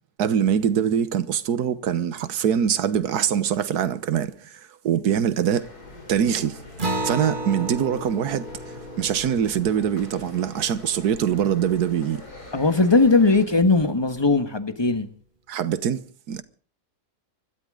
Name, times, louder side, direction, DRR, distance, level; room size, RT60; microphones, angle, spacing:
voice 1, 0.2-5.7 6.1-6.6 7.0-8.5 9.0-12.2 15.5-16.4, right 8 dB, 90° right, 1.5 m, -23 dB
sound 1, 5.5-13.5, left 2 dB, 80° left, 4.3 m, -44 dB
Acoustic guitar, 6.8-11.7, right 1 dB, 35° right, 1.7 m, -33 dB
voice 2, 12.5-15.1, left 3 dB, 15° left, 1.4 m, -19 dB
25.5 x 13.0 x 3.8 m
omnidirectional pair, 1.6 m